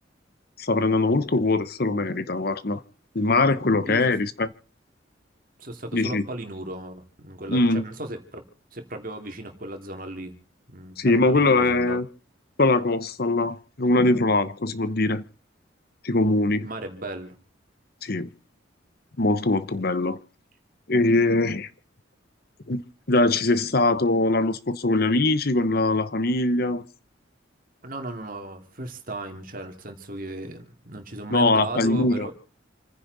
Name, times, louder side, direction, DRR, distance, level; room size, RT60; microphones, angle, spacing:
voice 1, 0.6-2.8 3.1-4.5 5.9-6.2 7.5-7.8 11.0-12.1 12.6-15.2 16.0-16.7 18.0-18.3 19.2-20.2 20.9-21.7 22.7-22.8 23.1-26.8 31.3-32.3, left 2 dB, 50° left, 0.9 m, -22 dB
voice 2, 5.6-8.4 8.7-10.3 10.7-12.0 16.6-17.4 27.8-32.3, right 1 dB, 45° right, 2.6 m, -36 dB
28.5 x 10.0 x 4.1 m
head